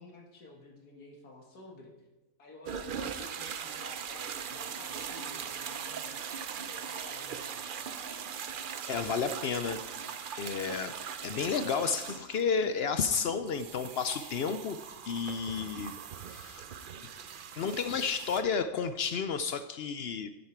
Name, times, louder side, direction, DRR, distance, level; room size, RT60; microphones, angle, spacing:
voice 1, 0.0-1.9 2.4-6.2 6.5-7.6, left 2 dB, 85° left, 0 dB, 2.3 m, -51 dB
sound 1, 2.7-18.4, right 7 dB, 65° right, 0.5 m, -40 dB
voice 2, 8.9-9.8 10.3-14.8 15.0-15.9 16.3-16.6 17.6-20.3, left 6 dB, 70° left, 10 dB, 0.6 m, -31 dB
10.5 x 9.6 x 4.5 m, 1.1 s
omnidirectional pair, 1.6 m